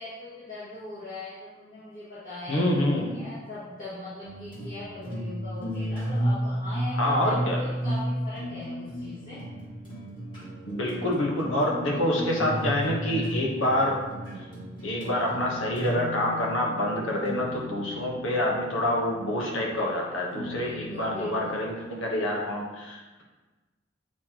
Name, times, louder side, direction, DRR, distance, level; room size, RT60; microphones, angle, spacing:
voice 1, 0.0-2.8 3.1-9.4 20.6-21.5, left 2 dB, 40° left, -12 dB, 1.9 m, -40 dB
voice 2, 2.5-3.2 7.0-7.6 10.7-14.0 14.8-23.2, left 1 dB, 80° left, -2 dB, 1.3 m, -27 dB
sound 1, 4.2-21.9, equal, 25° left, 1.8 m, -34 dB
8.3 x 4.3 x 3.0 m, 1.2 s
head